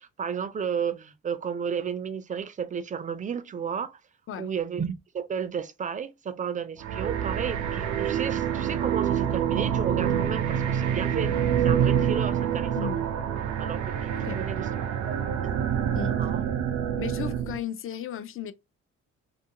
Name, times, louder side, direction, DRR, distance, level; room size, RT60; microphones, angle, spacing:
voice 1, 0.0-4.0 4.4-11.3 11.6-12.9 13.6-15.2 15.4-15.6 16.2-16.4, right 7 dB, 25° right, 0.4 m, -33 dB
sound 1, 6.8-17.6, right 9 dB, 75° right, 0.5 m, -27 dB
voice 2, 17.0-18.5, left 9 dB, 45° left, 0.5 m, -35 dB
2.6 x 2.5 x 2.8 m
cardioid pair, 90°, 30 cm